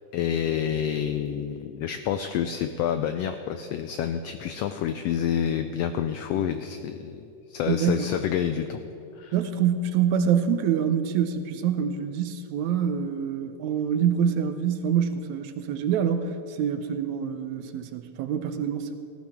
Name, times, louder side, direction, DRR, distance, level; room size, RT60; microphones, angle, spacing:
voice 1, 0.1-8.8 9.2-9.3, left 9 dB, 85° left, 8 dB, 1.4 m, -28 dB
voice 2, 7.7-8.1 9.3-19.0, right 8 dB, 85° right, 8 dB, 2.0 m, -26 dB
18.0 x 14.0 x 3.6 m, 2.7 s
omnidirectional pair, 3.4 m